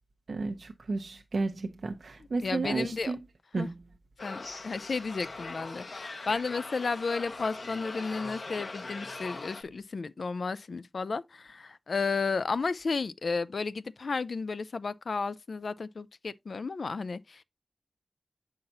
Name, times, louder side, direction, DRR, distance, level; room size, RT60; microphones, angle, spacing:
voice 1, 0.3-3.2 3.5-3.7, right 3 dB, 90° right, 0.6 m, -32 dB
voice 2, 2.4-3.1 3.6-3.7 4.2-17.4, left 4 dB, 90° left, 0.3 m, -33 dB
sound 1, 4.2-9.6, left 3 dB, 75° left, 0.9 m, -41 dB
7.8 x 5.7 x 2.7 m
wide cardioid pair, 75°, 0 cm